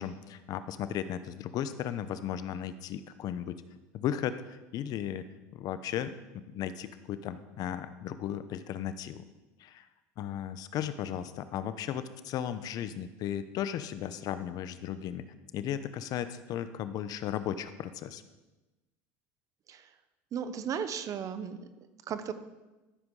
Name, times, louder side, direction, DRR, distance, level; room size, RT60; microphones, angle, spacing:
voice 1, 0.0-3.6 3.9-5.2 5.5-6.1 6.5-9.2 9.6-9.8 10.2-15.2 15.5-18.2, left 10 dB, 55° left, 12 dB, 0.8 m, -35 dB
voice 2, 20.3-21.6 22.1-22.3, right 7 dB, 45° right, 11 dB, 1.0 m, -35 dB
13.5 x 7.5 x 4.8 m, 1.1 s
supercardioid pair, 95°, 8 cm